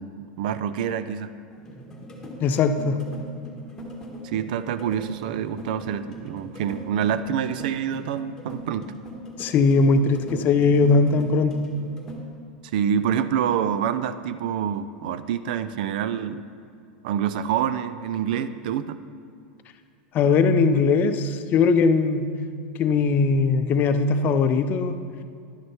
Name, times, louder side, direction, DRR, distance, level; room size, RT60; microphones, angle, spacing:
voice 1, 0.0-1.3 4.2-8.9 12.7-16.4 17.0-19.0, right 8 dB, 70° right, 13 dB, 0.4 m, -27 dB
sound 1, 1.5-12.2, right 1 dB, 10° left, 1.7 m, -40 dB
voice 2, 2.4-3.0 9.4-11.6 20.1-22.3 22.8-24.9, left 4 dB, 40° left, 9 dB, 0.6 m, -20 dB
11.0 x 6.2 x 4.5 m, 2.3 s
hypercardioid pair, 115°, 5 cm